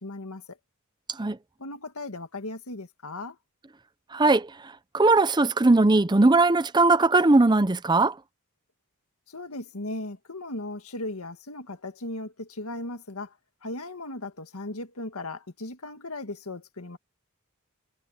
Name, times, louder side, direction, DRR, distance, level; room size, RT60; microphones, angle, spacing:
voice 1, 0.0-0.6 1.6-3.4 9.3-13.3 13.6-17.0, left 2 dB, 80° left, 1.9 m, -37 dB
voice 2, 4.1-4.5 4.9-8.1, right 2 dB, 20° right, 0.6 m, -19 dB
head